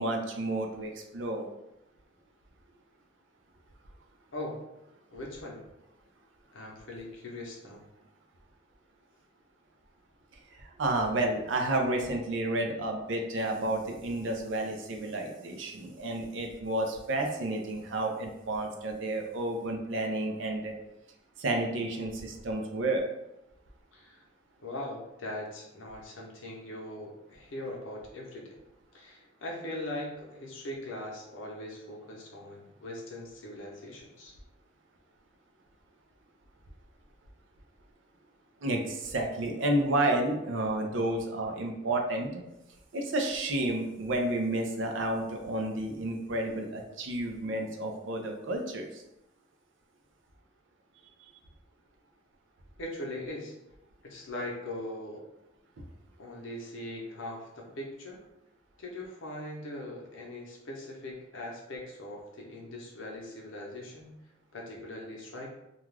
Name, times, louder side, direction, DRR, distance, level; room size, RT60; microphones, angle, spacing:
voice 1, 0.0-1.5 10.5-20.7 21.4-23.1 38.6-42.4 42.9-49.0, right 1 dB, 70° right, 3 dB, 0.5 m, -31 dB
voice 2, 5.1-5.6 6.5-7.8 23.9-24.2 24.6-28.5 28.9-34.3 52.8-53.5 54.0-55.2 56.2-58.2 58.8-64.1 64.5-65.5, left 1 dB, 75° left, -2 dB, 0.7 m, -40 dB
2.3 x 2.3 x 3.2 m, 0.88 s
head